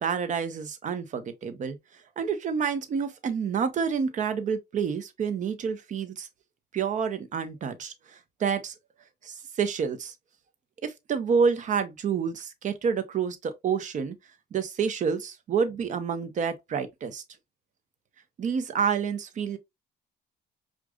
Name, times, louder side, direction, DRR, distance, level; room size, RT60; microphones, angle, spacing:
voice 1, 0.0-1.8 2.2-6.3 6.7-8.7 9.2-10.1 10.8-14.2 14.5-17.2 18.4-19.6, right 6 dB, 45° right, 0.9 m, -28 dB
6.1 x 2.5 x 2.4 m
cardioid pair, 110°, 17 cm